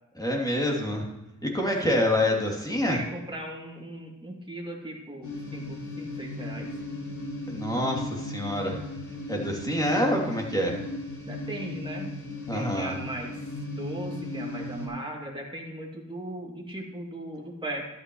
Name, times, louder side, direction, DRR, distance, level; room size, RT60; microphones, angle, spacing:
voice 1, 0.1-1.1 1.4-3.0 7.5-8.8 9.3-10.8 12.5-12.9, left 1 dB, 10° left, -1 dB, 2.8 m, -26 dB
voice 2, 1.6-2.0 2.9-6.8 11.2-12.2 12.5-13.4 13.8-17.9, right 1 dB, 15° right, -2 dB, 2.7 m, -38 dB
sound 1, 5.2-14.9, left 2 dB, 65° left, 2.7 m, -36 dB
13.0 x 9.2 x 3.2 m, 0.97 s
cardioid pair, 55°, 32 cm